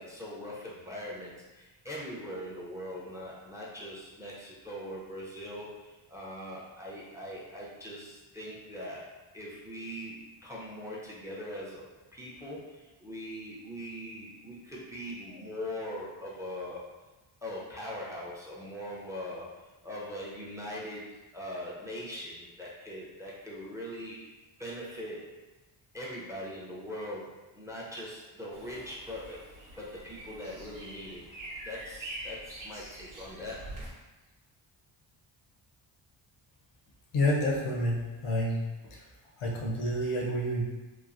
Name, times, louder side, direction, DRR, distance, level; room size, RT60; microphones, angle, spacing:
voice 1, 0.0-16.9 17.4-24.3 24.6-25.4 25.9-31.3 31.6-33.8, equal, 5° right, -5 dB, 0.5 m, -41 dB
sound 1, 28.5-33.9, right 1 dB, 40° right, 0.8 m, -45 dB
voice 2, 37.1-38.6 38.9-39.0 39.4-40.6, left 1 dB, 90° left, -2 dB, 0.8 m, -29 dB
3.0 x 2.0 x 2.4 m, 1.1 s
cardioid pair, 90°, 49 cm